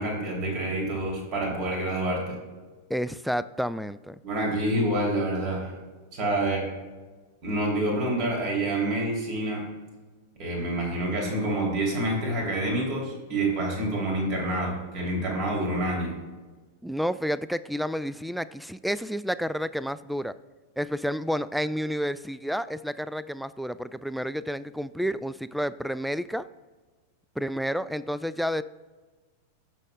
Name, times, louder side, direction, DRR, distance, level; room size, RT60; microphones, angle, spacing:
voice 1, 0.0-2.3 4.2-5.7 6.1-6.7 7.4-9.6 10.4-16.1, right 1 dB, 40° right, -1 dB, 2.8 m, -27 dB
voice 2, 2.9-4.2 16.8-20.3 20.8-26.5 27.4-28.6, equal, ahead, 16 dB, 0.3 m, -30 dB
16.0 x 6.4 x 2.2 m, 1.3 s
figure-of-eight pair, 90°, 0 cm